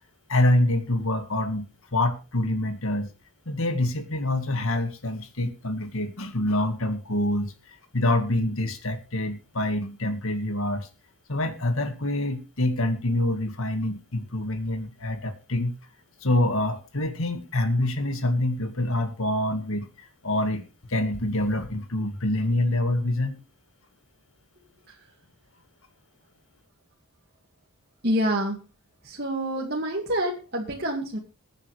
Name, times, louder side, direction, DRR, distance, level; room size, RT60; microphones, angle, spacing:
voice 1, 0.3-3.1 3.5-7.5 7.9-10.9 11.3-15.7 16.2-23.4, left 1 dB, 70° left, 8 dB, 1.9 m, -26 dB
voice 2, 28.0-28.6 29.0-31.2, equal, 45° right, -1 dB, 2.2 m, -27 dB
22.0 x 9.2 x 3.4 m, 0.31 s
head